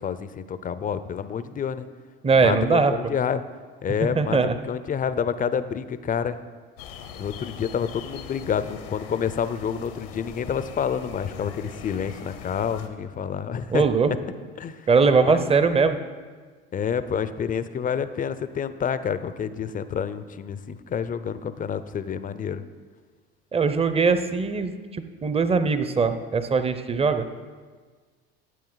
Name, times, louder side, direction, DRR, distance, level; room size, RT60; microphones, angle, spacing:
voice 1, 0.0-1.9 2.3-3.4 3.8-6.4 7.2-13.8 14.6-14.8 15.2-15.4 16.7-22.6, left 7 dB, 30° left, 13 dB, 0.6 m, -28 dB
voice 2, 2.2-2.9 4.2-4.5 13.7-14.1 14.9-16.0 23.5-27.3, right 4 dB, 20° right, 10 dB, 0.8 m, -21 dB
sound 1, 6.8-12.9, left 8 dB, 75° left, 1.1 m, -41 dB
12.5 x 8.4 x 4.0 m, 1.5 s
hypercardioid pair, 75°, 30 cm